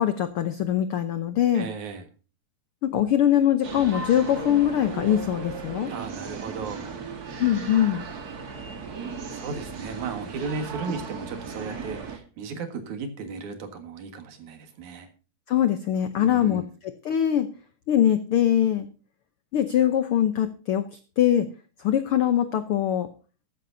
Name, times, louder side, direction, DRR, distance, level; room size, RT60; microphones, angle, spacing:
voice 1, 0.0-1.7 2.8-5.9 7.4-8.0 15.5-17.5 17.9-18.9 19.5-20.8 21.2-21.5 21.8-23.1, left 10 dB, 85° left, 10 dB, 1.2 m, -22 dB
voice 2, 1.5-2.0 5.9-6.9 9.3-15.1 16.2-16.7, right 4 dB, 70° right, 7 dB, 3.1 m, -35 dB
sound 1, 3.6-12.2, right 4 dB, 40° right, 1.6 m, -36 dB
14.0 x 13.5 x 2.7 m, 0.35 s
omnidirectional pair, 3.6 m